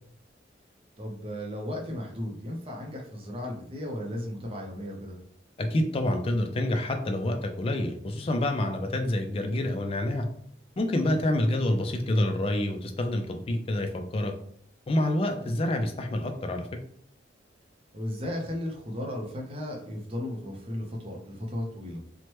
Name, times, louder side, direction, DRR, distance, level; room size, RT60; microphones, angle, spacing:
voice 1, 1.0-5.2 15.4-15.5 17.9-22.0, left 1 dB, 30° right, 0 dB, 0.5 m, -35 dB
voice 2, 5.6-10.3 10.8-14.3 14.9-16.7, left 1 dB, 30° left, 5 dB, 0.3 m, -27 dB
2.9 x 2.1 x 3.0 m, 0.64 s
head